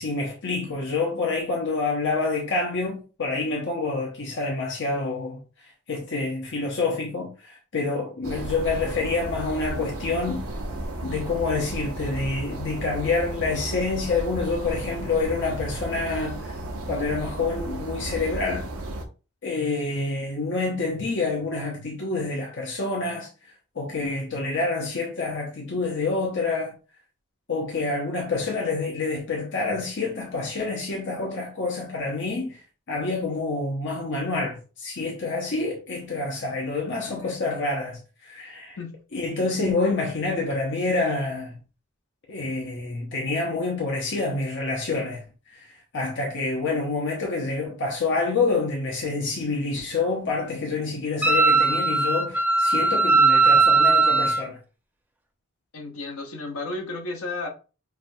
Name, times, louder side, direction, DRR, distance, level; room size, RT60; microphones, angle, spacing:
voice 1, 0.0-5.4 5.9-10.4 11.0-16.6 16.9-18.7 19.4-23.3 23.8-26.7 27.5-32.6 32.9-38.8 39.1-41.6 42.3-45.2 45.5-45.7 45.9-54.6, left 3 dB, 55° left, 0.8 m, -27 dB
sound 1, 8.2-19.1, right 1 dB, 80° right, 0.8 m, -34 dB
voice 2, 37.1-37.4 38.8-39.0 55.7-57.5, left 3 dB, 75° left, 1.1 m, -33 dB
Wind instrument woodwind instrument, 51.2-54.4, right 3 dB, 10° right, 0.4 m, -19 dB
5.7 x 2.3 x 2.6 m
head